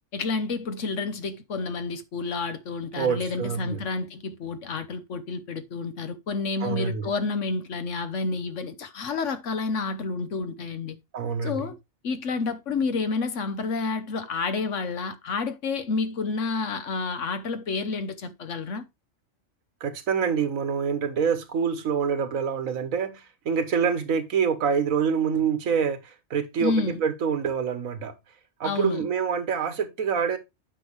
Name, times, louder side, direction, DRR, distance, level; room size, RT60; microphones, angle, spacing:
voice 1, 0.1-11.0 11.4-11.8 12.0-18.9 26.6-27.0 28.6-29.0, left 4 dB, 65° left, 1.3 m, -29 dB
voice 2, 2.9-3.8 6.6-7.1 11.1-11.6 19.8-28.1 28.6-30.4, right 6 dB, 85° right, 1.5 m, -26 dB
9.2 x 6.0 x 3.2 m
omnidirectional pair, 1.4 m